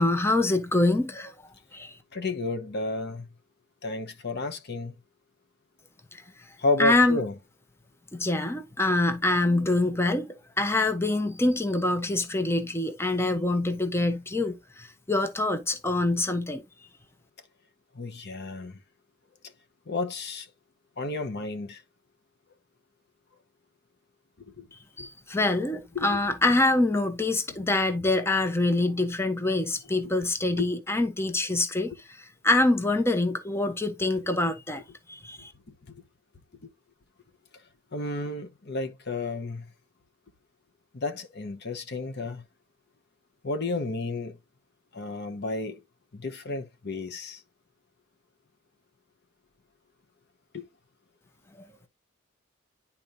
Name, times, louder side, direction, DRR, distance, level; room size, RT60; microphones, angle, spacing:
voice 1, 0.0-1.3 1.7-1.9 6.1-6.2 6.8-7.2 8.1-10.3 10.6-16.6 25.0-31.9 32.4-34.8 35.1-35.5, left 2 dB, 10° left, 0.8 m, -25 dB
voice 2, 2.1-3.3 3.8-4.9 6.6-7.3 17.9-18.8 19.9-20.5 21.0-21.8 24.5-24.6 25.0-25.1 25.9-26.2 35.9-36.0 36.6-36.7 37.9-39.6 40.9-42.4 43.4-44.4 44.9-45.8 46.1-47.4 50.5-50.6, left 2 dB, 55° left, 0.9 m, -31 dB
10.5 x 4.2 x 2.6 m
head